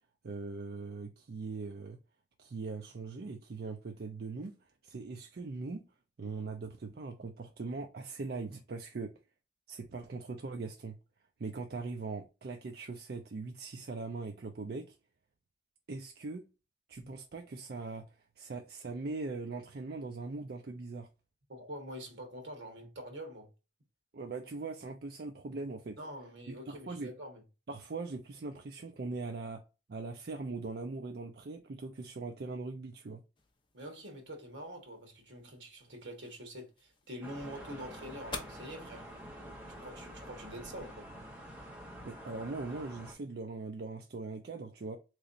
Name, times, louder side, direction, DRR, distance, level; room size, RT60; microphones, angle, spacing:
voice 1, 0.2-2.0 2.4-5.8 6.2-9.1 9.7-11.0 11.4-15.0 15.9-16.5 16.9-21.1 24.1-26.0 26.5-27.1 27.7-29.6 29.9-33.2 42.0-45.0, right 3 dB, 55° right, 0.4 m, -41 dB
voice 2, 21.5-23.5 26.0-27.4 33.7-39.0 39.6-41.1, equal, 80° right, 1.4 m, -45 dB
sound 1, 33.3-39.3, left 4 dB, 25° left, 0.6 m, -51 dB
sound 2, 37.2-43.1, equal, 5° right, 1.0 m, -48 dB
3.9 x 3.1 x 2.5 m
head